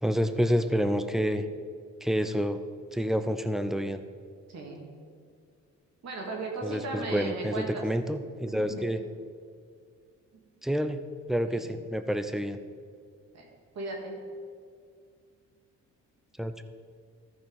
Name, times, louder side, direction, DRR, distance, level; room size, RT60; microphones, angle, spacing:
voice 1, 0.0-1.4 2.0-2.6 2.9-4.0 6.6-9.0 10.6-11.0 11.3-12.6 16.4-16.6, equal, ahead, 10 dB, 0.6 m, -28 dB
voice 2, 4.5-4.9 6.0-7.8 8.5-8.9 11.4-11.8 13.3-13.4 13.7-14.2, right 2 dB, 60° right, 0 dB, 2.5 m, -37 dB
14.0 x 5.2 x 5.5 m, 2.1 s
cardioid pair, 90°, 30 cm